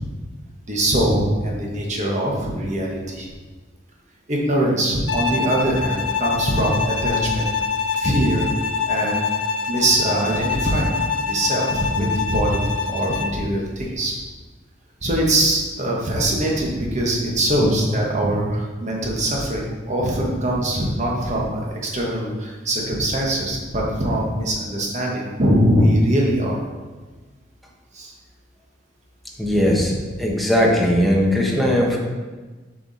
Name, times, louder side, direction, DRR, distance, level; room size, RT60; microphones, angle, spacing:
voice 1, 0.7-3.3 4.3-7.5 8.0-8.5 8.9-9.2 9.7-14.1 15.0-26.6 27.9-28.1 29.5-29.8, right 1 dB, 40° right, -2 dB, 1.4 m, -22 dB
Bowed string instrument, 5.1-13.4, left 5 dB, 65° left, 0.5 m, -25 dB
voice 2, 29.4-29.9 30.2-32.0, equal, ahead, -2 dB, 1.1 m, -18 dB
7.4 x 4.8 x 4.2 m, 1.3 s
head